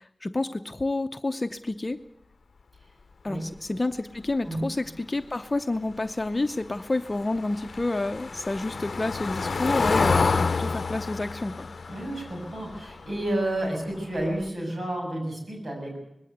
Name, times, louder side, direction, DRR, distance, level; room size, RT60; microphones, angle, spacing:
voice 1, 0.0-2.0 3.2-11.7, left 2 dB, 35° left, 9 dB, 0.7 m, -29 dB
Car passing by / Engine, 6.7-13.6 13.9-14.2 14.5-14.6, left 4 dB, 85° left, 0.7 m, -29 dB
voice 2, 11.9-16.0, right 1 dB, 70° right, 0 dB, 7.1 m, -31 dB
20.0 x 16.5 x 8.2 m, 0.82 s
wide cardioid pair, 65°, 0 cm